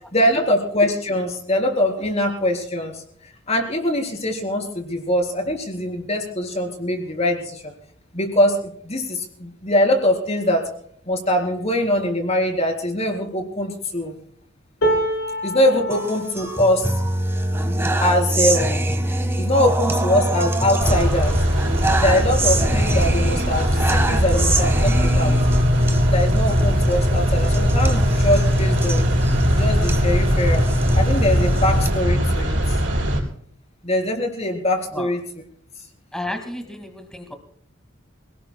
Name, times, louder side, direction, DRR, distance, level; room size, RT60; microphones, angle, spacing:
voice 1, 0.1-3.0 3.5-7.7 8.1-10.7 11.1-14.2 15.4-16.9 18.0-18.9 19.4-21.4 21.8-25.4 26.1-29.1 29.5-30.6 30.9-32.8 33.8-35.2, left 1 dB, 35° left, 3 dB, 3.8 m, -22 dB
sound 1, 14.8-21.0 21.5-21.7 22.0-22.8 23.8-23.9, right 1 dB, 60° left, 5.9 m, -30 dB
sound 2, 15.9-31.9, equal, 15° right, 1.5 m, -23 dB
sound 3, 20.8-33.2, equal, 70° right, 4.5 m, -21 dB
voice 2, 36.1-37.3, left 1 dB, 5° left, 5 dB, 2.0 m, -32 dB
27.5 x 18.5 x 2.3 m, 0.63 s
head